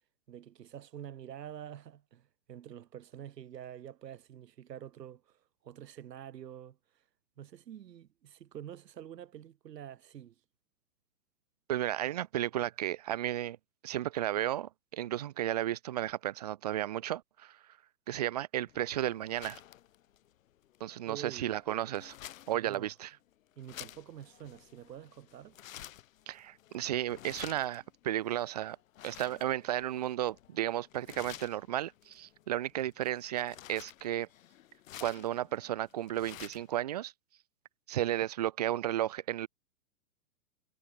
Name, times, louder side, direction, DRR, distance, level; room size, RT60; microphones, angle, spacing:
voice 1, 0.3-6.8 7.4-10.4 21.1-21.6 22.5-22.9 23.6-25.6, right 10 dB, 75° right, 2.1 m, -47 dB
voice 2, 11.7-13.6 13.8-17.6 18.1-19.6 20.8-22.1 22.5-23.2 26.3-28.8 29.0-34.3 35.0-37.1 37.9-39.5, right 12 dB, 25° right, 0.6 m, -33 dB
sound 1, 18.7-36.8, left 12 dB, 55° left, 1.9 m, -52 dB
hypercardioid pair, 165°, 49 cm